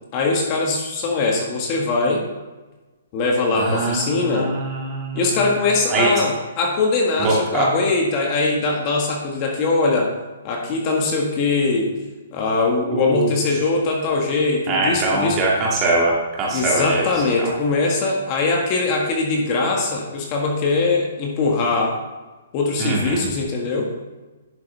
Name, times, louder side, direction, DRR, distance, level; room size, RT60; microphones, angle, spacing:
voice 1, 0.1-2.2 3.1-4.5 5.2-10.1 10.4-11.9 12.3-15.4 16.5-22.0 22.5-23.9, left 3 dB, 30° left, 0 dB, 1.7 m, -21 dB
voice 2, 3.5-5.4 5.9-6.1 7.2-7.7 12.9-13.4 14.7-17.5 22.8-23.3, right 3 dB, 25° right, -3 dB, 2.2 m, -22 dB
11.0 x 6.7 x 3.4 m, 1.2 s
hypercardioid pair, 155°, 0 cm